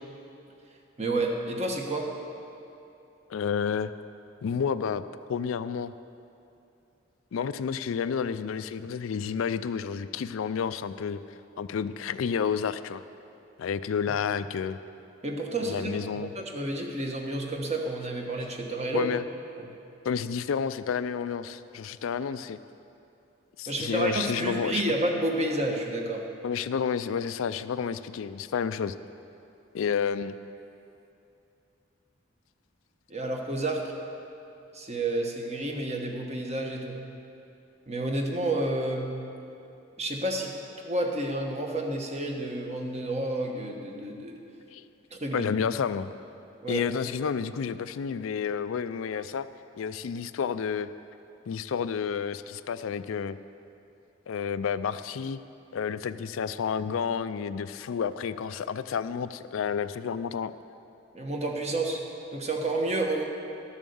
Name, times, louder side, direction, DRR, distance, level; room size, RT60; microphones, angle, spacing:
voice 1, 1.0-2.1 15.2-19.1 19.6-19.7 23.7-26.2 33.1-33.9 34.7-37.0 37.9-39.1 40.0-40.5 40.8-44.4 45.1-45.5 46.6-46.8 61.1-62.0 62.3-63.2, right 2 dB, 35° right, 2 dB, 1.2 m, -30 dB
voice 2, 3.3-3.9 4.4-5.0 5.3-5.9 7.3-11.2 11.6-13.0 13.6-14.8 15.6-16.3 18.9-19.2 20.0-22.6 23.6-24.8 26.4-28.9 29.7-30.4 44.7-44.9 45.3-46.1 46.7-49.5 49.8-50.9 51.5-53.4 54.3-55.4 55.7-60.5, left 6 dB, 80° left, 13 dB, 0.4 m, -30 dB
12.5 x 7.2 x 6.9 m, 2.8 s
head